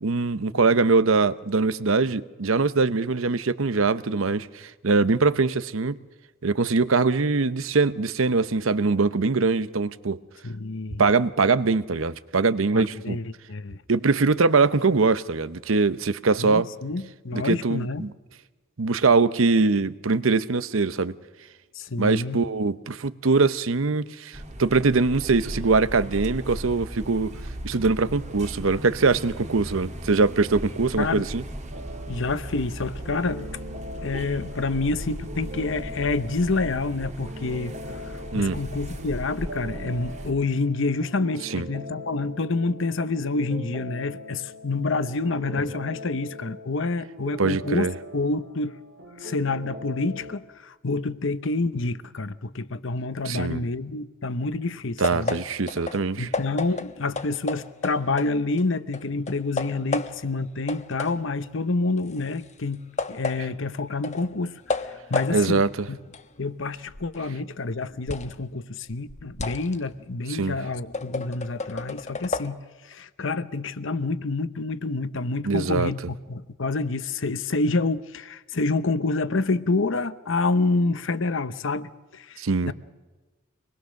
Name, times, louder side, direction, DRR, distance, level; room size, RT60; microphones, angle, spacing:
voice 1, 0.0-6.0 6.4-10.2 11.0-13.2 13.9-16.7 17.3-18.1 18.8-21.1 22.0-27.3 27.6-31.4 38.3-38.6 41.5-41.7 47.4-47.9 53.2-53.6 55.0-56.3 65.3-65.9 70.3-70.6 75.4-75.9 82.4-82.7, right 4 dB, 80° right, 0.8 m, -22 dB
voice 2, 10.4-11.0 12.7-13.8 16.4-18.1 21.7-22.4 31.0-31.2 32.1-33.5 34.0-38.0 38.3-48.8 49.2-55.4 56.2-66.0 66.4-82.7, left 3 dB, 65° left, 0.9 m, -28 dB
sound 1, 24.3-40.3, equal, 35° right, 1.9 m, -37 dB
sound 2, 31.7-50.4, left 1 dB, 60° right, 2.2 m, -41 dB
sound 3, 55.0-58.7 58.9-60.4 60.7-68.4 68.8-72.5, left 3 dB, 35° left, 1.1 m, -33 dB
25.5 x 20.5 x 6.5 m
head